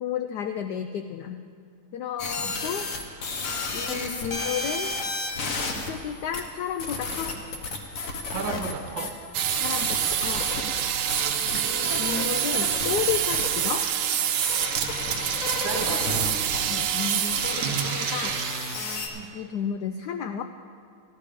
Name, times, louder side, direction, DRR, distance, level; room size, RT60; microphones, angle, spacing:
voice 1, 0.0-1.4 1.9-2.9 3.7-4.9 5.8-7.4 9.6-10.5 11.6-13.9 16.7-18.4 19.3-20.4, left 8 dB, 85° left, 7 dB, 0.9 m, -32 dB
sound 1, 2.2-19.1, left 3 dB, 50° left, 1.3 m, -33 dB
voice 2, 8.2-9.2 11.4-11.7 15.6-16.1 19.1-19.3, right 6 dB, 65° right, 7 dB, 1.4 m, -34 dB
sound 2, 9.3-18.8, right 9 dB, 90° right, 1.6 m, -26 dB
13.5 x 11.5 x 5.0 m, 2.2 s
omnidirectional pair, 2.3 m